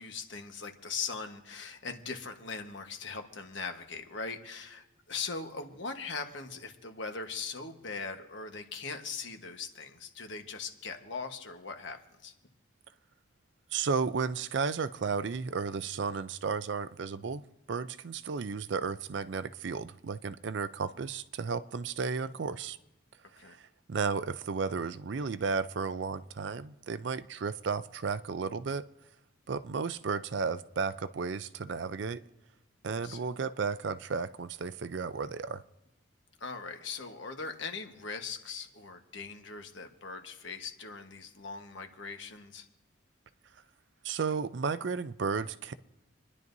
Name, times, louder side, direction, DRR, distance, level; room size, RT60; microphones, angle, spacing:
voice 1, 0.0-12.3 23.4-23.6 32.9-33.2 36.4-42.7, left 4 dB, 65° left, 5 dB, 1.2 m, -40 dB
voice 2, 13.7-17.4 17.7-22.8 23.4-23.6 23.9-28.8 29.5-32.2 32.8-35.6 44.0-45.7, right 5 dB, 60° right, 14 dB, 0.4 m, -33 dB
28.0 x 11.0 x 2.7 m, 1.0 s
head